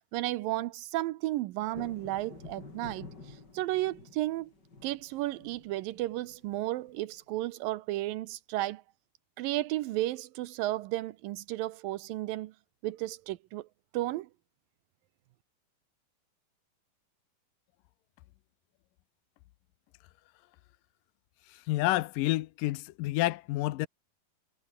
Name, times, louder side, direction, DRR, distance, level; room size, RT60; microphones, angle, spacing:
voice 1, 0.1-3.1 3.5-4.5 4.8-8.8 9.4-12.5 12.8-13.7 13.9-14.3, right 16 dB, 75° right, 2.3 m, -33 dB
sound 1, 1.7-7.2, left 3 dB, 25° left, 4.7 m, -50 dB
voice 2, 21.5-23.9, left 17 dB, 75° left, 2.2 m, -29 dB
omnidirectional pair, 4.3 m